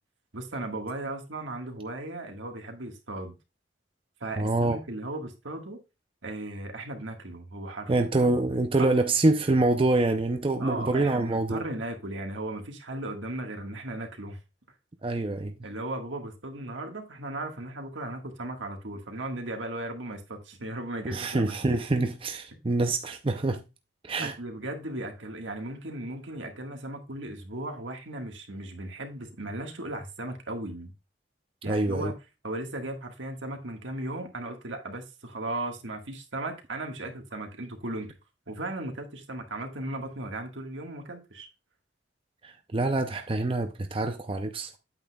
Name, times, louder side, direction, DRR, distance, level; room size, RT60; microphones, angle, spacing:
voice 1, 0.3-3.3 4.2-5.8 6.2-8.3 8.8-9.0 10.6-14.4 15.6-21.6 24.2-30.9 31.6-32.1 32.4-38.1 38.5-41.5, right 2 dB, 80° right, 1.6 m, -36 dB
voice 2, 4.4-4.8 7.9-11.6 15.0-15.5 21.1-23.6 24.0-24.3 31.7-32.1 42.4-44.8, right 2 dB, 30° right, 0.6 m, -26 dB
8.7 x 8.1 x 2.3 m
head